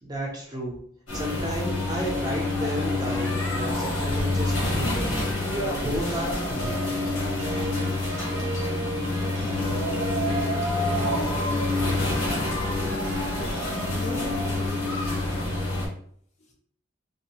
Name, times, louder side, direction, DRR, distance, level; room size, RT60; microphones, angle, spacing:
voice 1, 0.0-0.8 1.1-5.1 5.8-6.8, equal, 20° right, -2 dB, 0.5 m, -33 dB
sound 1, 1.1-15.9, left 2 dB, 90° left, 1.0 m, -27 dB
sound 2, 6.6-14.0, right 3 dB, 70° right, 0.5 m, -39 dB
voice 2, 8.1-8.6 9.3-15.3 16.4-16.5, left 1 dB, 35° left, 0 dB, 0.5 m, -41 dB
2.8 x 2.0 x 2.8 m, 0.62 s
head